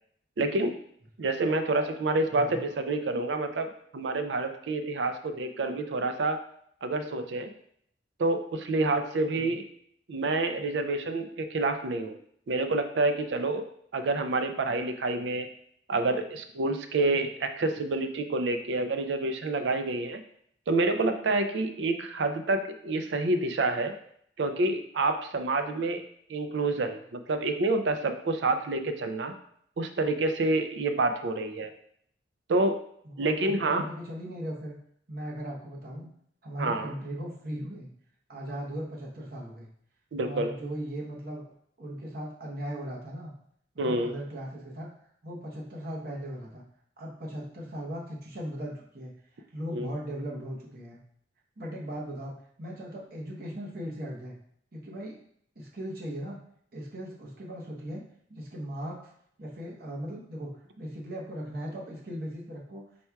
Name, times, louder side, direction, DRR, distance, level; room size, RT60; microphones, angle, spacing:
voice 1, 0.4-0.8 1.2-6.4 6.8-7.5 8.2-9.6 10.1-12.2 12.5-13.7 13.9-15.5 15.9-20.2 20.7-23.9 24.4-26.0 26.3-29.3 29.8-31.7 32.5-32.7 33.2-33.9 36.6-36.9 40.1-40.5 43.8-44.1 49.7-49.9, right 2 dB, 70° right, 8 dB, 0.4 m, -28 dB
voice 2, 9.2-9.6 33.0-34.8 35.1-36.1 36.4-37.9 38.3-39.7 40.2-41.5 41.8-43.3 43.7-44.9 45.2-46.6 47.0-49.1 49.5-51.0 51.6-52.3 52.6-54.3 54.7-55.2 55.6-56.4 56.7-58.0 58.3-59.1 59.4-62.8, equal, 55° right, -3 dB, 0.9 m, -38 dB
4.2 x 2.3 x 4.5 m, 0.66 s
head